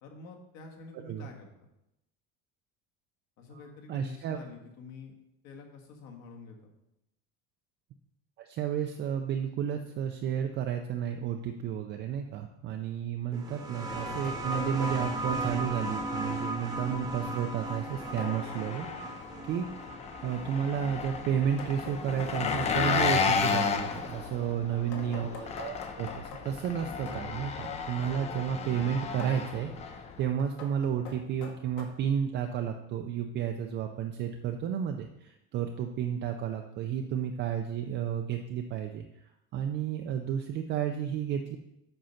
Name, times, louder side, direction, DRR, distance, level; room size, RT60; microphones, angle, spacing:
voice 1, 0.0-1.7 3.4-5.1 5.4-6.7 24.5-25.3, left 4 dB, 55° left, 2 dB, 1.7 m, -48 dB
voice 2, 3.9-4.4 8.4-18.9 19.4-39.0 39.5-41.6, right 8 dB, 35° right, 4 dB, 0.4 m, -32 dB
sound 1, 12.0-12.1 13.3-15.3 18.2-18.7 21.3-23.4 24.9-27.3 29.2-29.5 30.4-31.8, left 5 dB, 75° left, 1.7 m, -45 dB
sound 2, 13.3-22.6 23.7-23.8, right 1 dB, 10° right, 0.9 m, -37 dB
Engine, 14.5-30.3, left 5 dB, 20° left, 0.5 m, -34 dB
7.8 x 5.3 x 5.7 m, 0.87 s
cardioid pair, 175°, 33 cm